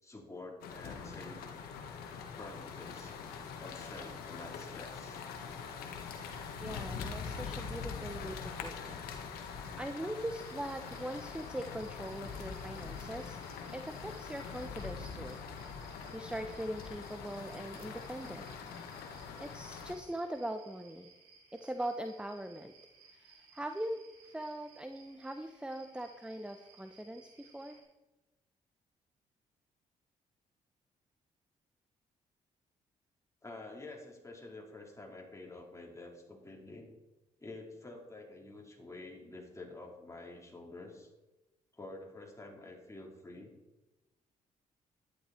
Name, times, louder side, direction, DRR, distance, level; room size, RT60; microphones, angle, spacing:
voice 1, 0.0-1.5 2.4-3.2 3.6-5.2 33.4-36.9 37.4-41.1 41.7-43.5, left 2 dB, 20° left, -1 dB, 4.2 m, -48 dB
sound 1, 0.6-19.9, left 6 dB, 80° left, 1.6 m, -43 dB
voice 2, 6.6-9.0 9.4-13.4 13.7-15.4 15.8-18.5 19.4-21.1 21.5-22.7 23.1-27.8, right 1 dB, 5° right, 7 dB, 1.0 m, -41 dB
sound 2, 10.3-27.8, right 4 dB, 90° right, 4.5 m, -61 dB
11.5 x 11.0 x 4.5 m, 1.0 s
supercardioid pair, 50°, 16 cm